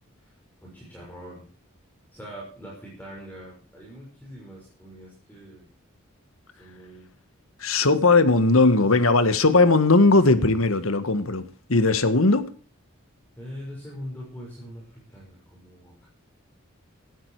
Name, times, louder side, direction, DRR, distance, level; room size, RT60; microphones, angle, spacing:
voice 1, 0.2-1.4 2.1-5.6 6.5-7.1 7.8-8.0 13.4-14.8 15.1-16.1, equal, 10° left, -5 dB, 6.0 m, -42 dB
voice 2, 7.6-12.5, left 3 dB, 80° left, 12 dB, 1.7 m, -19 dB
17.5 x 13.0 x 4.9 m, 0.39 s
head